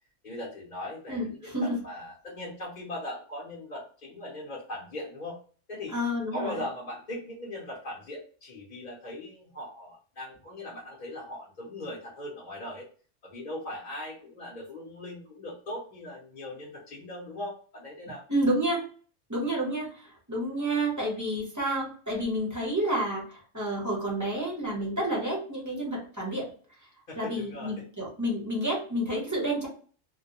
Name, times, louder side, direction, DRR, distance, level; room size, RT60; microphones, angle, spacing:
voice 1, 0.2-5.4 5.7-6.0 6.3-12.9 13.2-18.2 27.1-27.8, left 1 dB, 45° left, -4 dB, 0.7 m, -39 dB
voice 2, 1.1-1.8 5.9-6.6 18.3-18.8 19.3-26.5 27.2-29.7, right 1 dB, 15° right, -4 dB, 0.7 m, -30 dB
2.2 x 2.1 x 2.8 m, 0.42 s
omnidirectional pair, 1.3 m